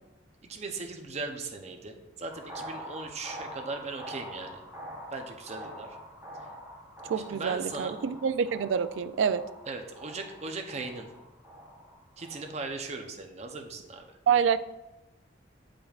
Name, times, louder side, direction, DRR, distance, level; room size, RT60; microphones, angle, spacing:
voice 1, 0.5-4.6 5.1-6.0 7.2-7.9 9.7-11.1 12.2-14.2, right 3 dB, 35° right, 4 dB, 0.6 m, -38 dB
sound 1, 2.3-12.5, equal, 15° right, 1.3 m, -45 dB
voice 2, 7.0-9.4 14.3-14.6, right 7 dB, 90° right, 13 dB, 0.3 m, -27 dB
9.0 x 5.1 x 2.4 m, 1.0 s
head